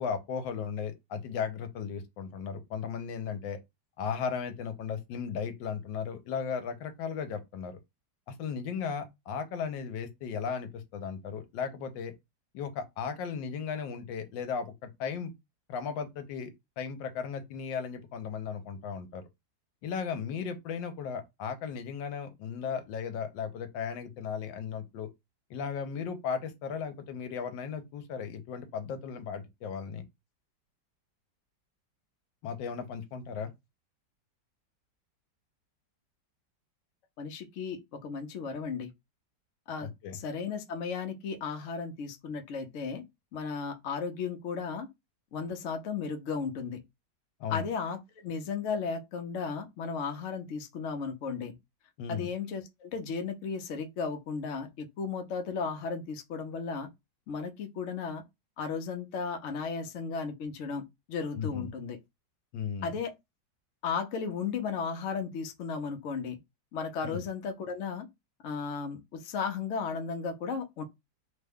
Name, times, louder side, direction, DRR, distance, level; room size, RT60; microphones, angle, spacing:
voice 1, 0.0-3.6 4.0-7.8 8.3-12.1 12.5-15.3 15.7-19.2 19.8-25.1 25.5-30.0 32.4-33.5 39.8-40.2 47.4-47.7 52.0-52.3 61.4-61.7 62.5-62.9 67.0-67.2, left 6 dB, 85° left, 1.3 m, -36 dB
voice 2, 37.2-38.9 39.7-43.0 43.3-44.9 45.3-46.8 47.5-51.5 52.1-56.9 57.3-58.2 58.6-60.8 61.1-62.0 62.8-63.1 63.8-66.4 66.7-68.1 68.4-70.8, left 5 dB, 65° left, 0.7 m, -35 dB
3.2 x 2.2 x 3.4 m
omnidirectional pair, 2.0 m